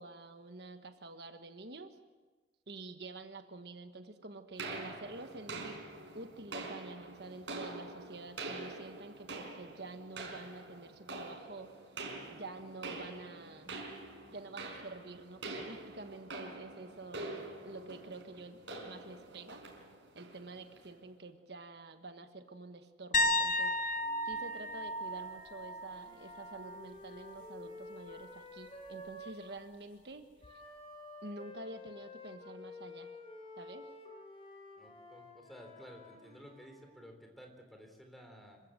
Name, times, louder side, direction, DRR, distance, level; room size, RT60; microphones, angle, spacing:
voice 1, 0.0-2.0 2.7-5.8 6.1-12.0 12.3-13.7 14.3-17.3 17.6-19.6 20.1-23.8 24.2-30.6 31.2-33.1 33.6-33.9, right 2 dB, 60° right, 7 dB, 1.4 m, -48 dB
sound 1, 4.6-20.9, right 2 dB, 85° right, 4.9 m, -46 dB
sound 2, 23.1-26.9 27.2-27.6 30.4-30.5, left 1 dB, 45° left, 1.1 m, -34 dB
Wind instrument woodwind instrument, 23.9-29.7 30.4-36.9, left 2 dB, 30° left, 4.7 m, -51 dB
voice 2, 34.8-38.6, equal, ahead, 3 dB, 3.7 m, -54 dB
27.0 x 15.5 x 7.7 m, 1.3 s
head